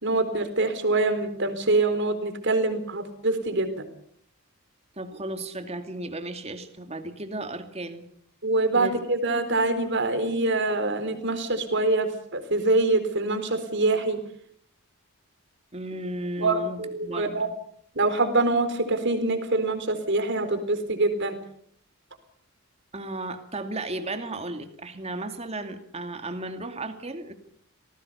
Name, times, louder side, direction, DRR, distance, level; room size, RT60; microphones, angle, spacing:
voice 1, 0.0-3.8 8.4-14.2 16.4-17.5 18.0-21.4, right 2 dB, 55° right, 9 dB, 4.1 m, -25 dB
voice 2, 5.0-8.1 8.7-8.9 15.7-17.5 22.9-27.3, right 2 dB, 30° right, 7 dB, 2.4 m, -34 dB
27.5 x 18.5 x 6.9 m, 0.65 s
head